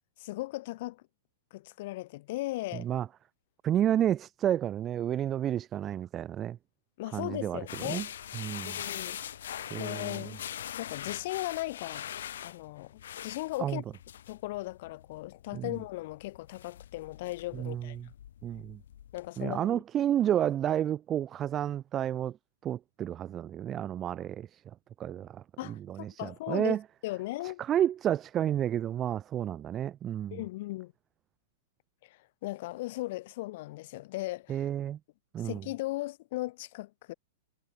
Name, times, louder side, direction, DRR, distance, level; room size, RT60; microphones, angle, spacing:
voice 1, 0.2-1.0 1.5-2.9 7.0-8.0 8.7-9.2 9.8-10.4 10.8-12.1 12.4-13.8 14.3-18.0 19.1-19.8 25.6-26.8 27.0-27.6 30.3-30.9 32.0-34.6 35.4-37.1, left 19 dB, 55° left, 0.4 m, -37 dB
voice 2, 2.7-3.1 3.6-6.6 7.1-8.1 8.3-8.8 9.7-10.4 13.6-13.8 15.5-15.8 17.5-18.1 18.4-18.8 19.4-22.4 22.6-26.8 27.4-30.4 34.5-35.0 35.3-35.7, right 10 dB, 25° right, 0.7 m, -31 dB
sound 1, 7.7-19.3, left 10 dB, 70° left, 2.6 m, -42 dB
hypercardioid pair, 125°, 0 cm